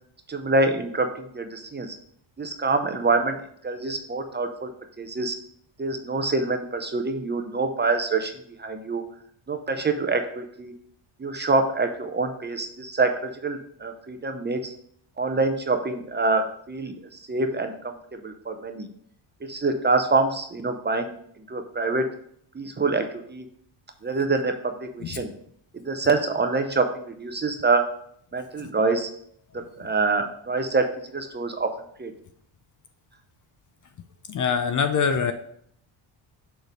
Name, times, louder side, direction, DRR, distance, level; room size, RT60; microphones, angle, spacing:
voice 1, 0.3-2.0 2.4-3.4 3.6-4.7 5.0-5.4 5.8-9.0 9.5-10.7 11.2-14.7 15.2-17.0 17.3-18.9 19.5-21.1 21.5-22.1 22.5-23.5 24.0-25.3 25.7-27.9 28.3-29.1 29.5-31.7 32.0-32.1, right 3 dB, 20° right, 6 dB, 0.6 m, -26 dB
voice 2, 34.3-35.3, left 6 dB, 40° left, 9 dB, 0.5 m, -23 dB
6.7 x 3.3 x 5.2 m, 0.65 s
cardioid pair, 115°, 49 cm